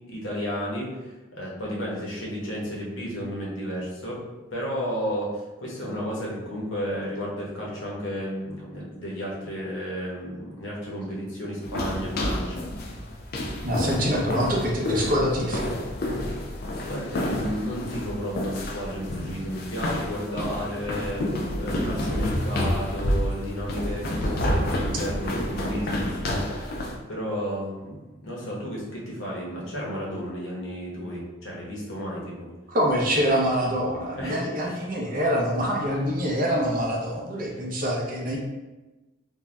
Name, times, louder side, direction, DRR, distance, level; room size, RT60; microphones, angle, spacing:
voice 1, 0.1-4.2 4.5-12.6 16.8-21.2 21.6-32.5 34.2-34.8, equal, 65° left, -4 dB, 0.9 m, -32 dB
sound 1, 11.6-27.0, left 1 dB, 45° left, 0.4 m, -29 dB
voice 2, 13.6-15.7 32.7-38.4, equal, 40° right, -2 dB, 0.6 m, -25 dB
2.6 x 2.2 x 3.2 m, 1.1 s
head